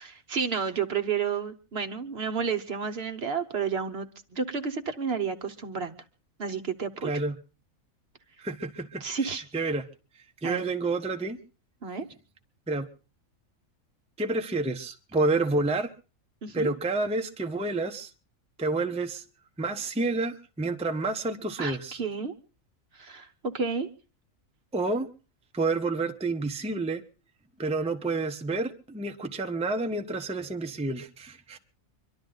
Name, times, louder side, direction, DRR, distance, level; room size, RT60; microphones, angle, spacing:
voice 1, 0.0-6.0 6.4-7.1 9.0-9.4 10.4-10.6 11.8-12.1 16.4-16.7 21.6-22.3 22.9-23.9, right 6 dB, 50° right, 1.1 m, -31 dB
voice 2, 7.0-7.3 8.4-9.0 9.5-9.8 10.4-11.4 12.7-12.9 14.2-15.9 16.5-18.1 18.6-19.2 19.6-22.0 24.7-25.1 25.5-27.0 27.6-31.6, right 3 dB, 5° right, 0.7 m, -29 dB
25.5 x 12.0 x 3.9 m
omnidirectional pair, 1.4 m